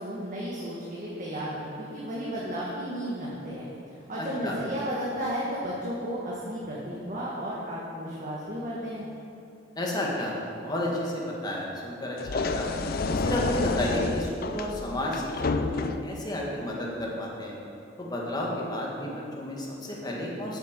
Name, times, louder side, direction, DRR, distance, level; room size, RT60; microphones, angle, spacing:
voice 1, 0.0-3.7 4.0-9.1, equal, 45° right, -6 dB, 1.5 m, -33 dB
voice 2, 9.8-12.7 13.1-15.3 15.6-17.6 18.0-20.6, left 1 dB, 20° left, -3 dB, 1.7 m, -31 dB
sound 1, 12.2-16.2, left 3 dB, 55° left, 0.5 m, -29 dB
7.8 x 6.6 x 8.2 m, 2.7 s
head